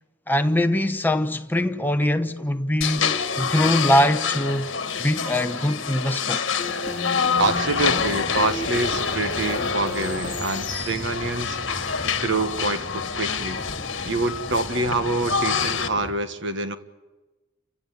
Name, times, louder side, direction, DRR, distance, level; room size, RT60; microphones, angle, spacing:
voice 1, 0.3-4.7 5.0-6.4, left 1 dB, 10° left, 0.9 m, -22 dB
sound 1, 2.8-15.9, left 6 dB, 60° left, 1.7 m, -27 dB
sound 2, 6.6-11.2, equal, 20° right, 4.0 m, -34 dB
sound 3, 7.3-16.1, equal, 30° left, 1.8 m, -39 dB
voice 2, 7.4-13.6 14.1-16.8, right 2 dB, 60° right, 1.6 m, -26 dB
29.5 x 16.0 x 9.9 m
head